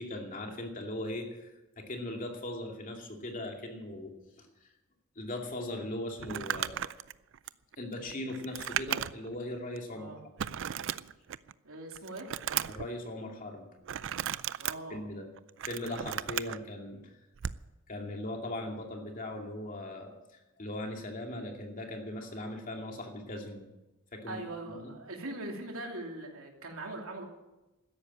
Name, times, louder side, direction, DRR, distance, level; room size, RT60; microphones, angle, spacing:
voice 1, 0.0-1.5 1.8-4.5 5.2-6.8 7.8-10.1 12.7-13.7 14.9-15.3 15.6-17.1 17.9-20.1 20.6-23.7 24.1-24.4 24.7-24.9, left 1 dB, 40° left, 2 dB, 2.5 m, -39 dB
Crumpling crinkling, 6.2-9.4 9.8-9.9 10.4-11.5 11.9-12.9 13.9-14.7 15.4-16.6 17.4-17.6, right 10 dB, 60° right, 0.4 m, -35 dB
voice 2, 9.9-10.2 11.6-12.3 14.6-15.0 24.3-27.3, right 2 dB, 75° right, 1 dB, 2.9 m, -41 dB
13.5 x 10.5 x 8.9 m, 1.0 s
head